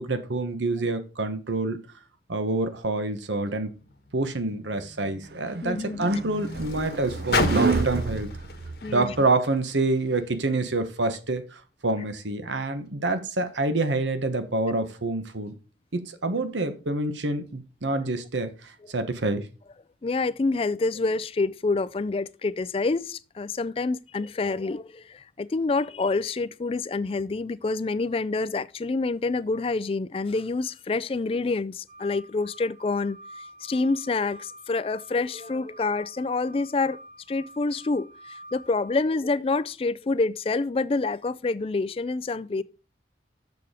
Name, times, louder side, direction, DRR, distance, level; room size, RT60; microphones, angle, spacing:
voice 1, 0.0-1.8 2.3-3.7 4.1-8.3 8.9-15.5 15.9-19.5, right 2 dB, 85° right, 1.1 m, -27 dB
Car, 3.7-10.3 11.1-11.2, left 3 dB, 60° left, 1.3 m, -34 dB
sound 1, 5.5-9.2, right 4 dB, 60° right, 0.5 m, -29 dB
voice 2, 5.6-6.2 8.8-9.1 20.0-33.2 33.6-37.0 37.3-42.6, left 3 dB, 30° left, 0.3 m, -27 dB
sound 2, 31.9-39.0, right 1 dB, 40° right, 2.3 m, -47 dB
7.1 x 6.8 x 4.9 m
head